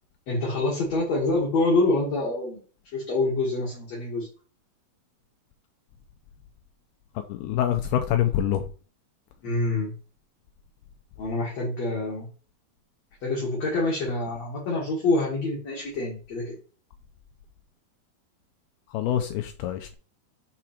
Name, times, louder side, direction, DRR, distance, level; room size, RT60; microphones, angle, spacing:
voice 1, 0.3-2.6 2.9-4.3 9.4-9.9 11.2-12.3 13.2-16.6, left 2 dB, 45° left, 2.6 m, -26 dB
voice 2, 7.2-8.7 18.9-19.9, left 10 dB, 90° left, 2.2 m, -26 dB
7.0 x 4.8 x 4.3 m
omnidirectional pair, 5.0 m